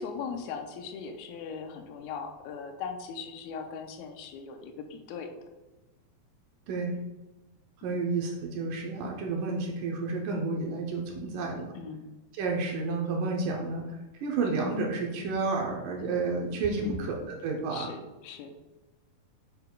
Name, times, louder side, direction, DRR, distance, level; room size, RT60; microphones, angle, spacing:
voice 1, 0.0-5.3 7.9-8.0 11.7-12.1 16.8-17.1 17.7-18.6, left 5 dB, 90° left, 5 dB, 2.6 m, -39 dB
voice 2, 7.8-11.7 12.3-13.9 14.2-17.9, right 3 dB, 75° right, 0 dB, 2.2 m, -30 dB
8.0 x 6.8 x 2.3 m, 1.1 s
omnidirectional pair, 4.3 m